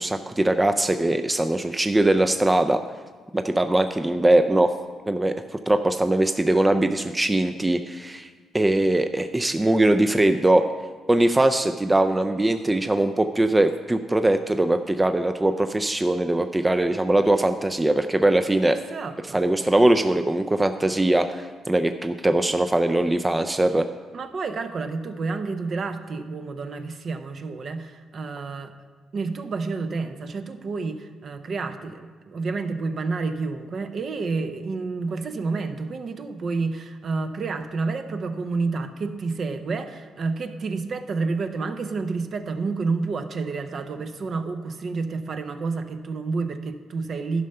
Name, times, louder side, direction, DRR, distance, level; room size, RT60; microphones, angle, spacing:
voice 1, 0.0-2.8 3.3-4.7 5.1-5.3 5.7-8.3 8.5-10.6 11.1-18.8 19.3-23.9, right 1 dB, 15° right, 8 dB, 0.4 m, -21 dB
voice 2, 18.7-19.4 24.1-28.7 29.1-47.5, right 4 dB, 50° right, 8 dB, 0.7 m, -29 dB
11.0 x 5.4 x 5.5 m, 1.5 s
cardioid pair, 90°, 0 cm